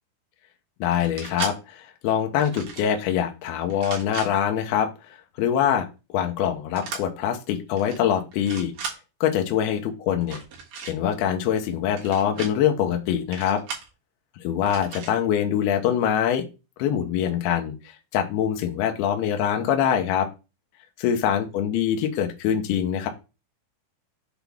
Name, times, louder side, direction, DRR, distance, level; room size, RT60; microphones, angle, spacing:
voice 1, 0.8-4.9 5.4-5.8 6.1-8.7 9.2-10.4 10.8-13.6 14.4-16.4 16.8-20.3 21.0-23.1, left 9 dB, 75° left, 5 dB, 2.6 m, -24 dB
sound 1, 0.9-1.5 2.4-2.9 3.7-4.3 6.8-7.0 7.7-8.0 8.3-9.0 10.2-10.9 11.9-12.5 13.3-13.9 14.7-15.1, right 5 dB, 60° right, 2.7 m, -36 dB
7.0 x 4.0 x 3.4 m, 0.30 s
omnidirectional pair, 4.8 m